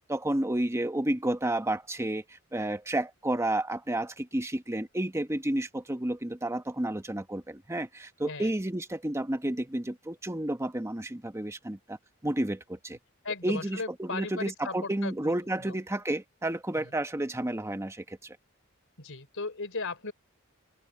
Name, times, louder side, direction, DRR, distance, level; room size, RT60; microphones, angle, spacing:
voice 1, 0.1-12.0 12.2-13.0 13.4-18.4, right 1 dB, 15° right, 1.1 m, -31 dB
voice 2, 13.2-15.3 15.6-15.8 16.8-16.9 19.0-20.1, left 3 dB, 65° left, 4.5 m, -37 dB
open air
head